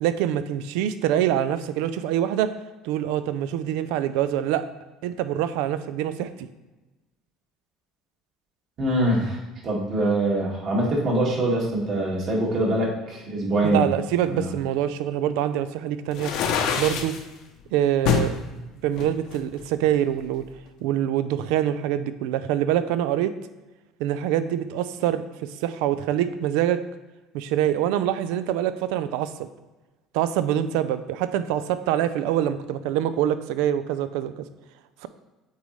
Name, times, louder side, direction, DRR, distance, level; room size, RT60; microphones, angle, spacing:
voice 1, 0.0-2.5 2.8-4.6 5.0-6.5 13.6-16.3 16.8-17.1 17.7-18.3 18.8-20.4 20.8-23.3 24.0-26.8 27.3-29.5 30.1-34.5, right 11 dB, 80° right, 12 dB, 0.4 m, -25 dB
voice 2, 8.8-9.4 9.6-13.8 14.2-14.5, right 1 dB, 50° right, -3 dB, 2.0 m, -24 dB
sound 1, 16.1-17.2 18.1-18.3 19.0-20.0, left 7 dB, 70° left, 0.8 m, -25 dB
8.2 x 4.1 x 3.2 m, 1.1 s
supercardioid pair, 100°, 0 cm